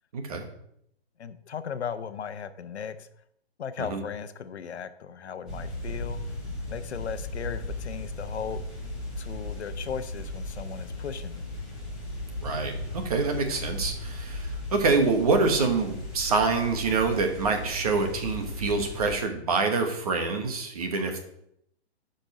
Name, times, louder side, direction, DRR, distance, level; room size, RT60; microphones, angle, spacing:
voice 1, 0.1-0.5 3.8-4.0 12.4-21.2, right 4 dB, 35° right, 5 dB, 1.2 m, -26 dB
voice 2, 1.2-3.1 3.6-6.2 6.7-8.6 9.2-11.5, left 7 dB, 90° left, 11 dB, 0.9 m, -36 dB
sound 1, 5.5-19.2, left 1 dB, ahead, 1.1 m, -36 dB
8.9 x 5.4 x 5.3 m, 0.73 s
hypercardioid pair, 175°, 32 cm